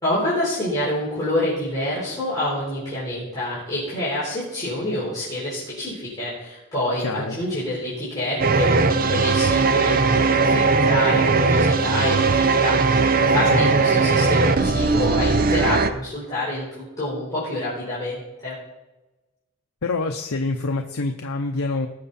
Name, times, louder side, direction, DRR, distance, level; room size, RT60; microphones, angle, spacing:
voice 1, 0.0-18.6, left 1 dB, 15° left, -10 dB, 4.4 m, -27 dB
voice 2, 7.0-7.4 13.4-13.7 19.8-21.9, left 3 dB, 85° left, 3 dB, 0.8 m, -26 dB
sound 1, 8.4-15.9, right 4 dB, 40° right, 0.6 m, -19 dB
19.0 x 6.8 x 4.3 m, 1.1 s
head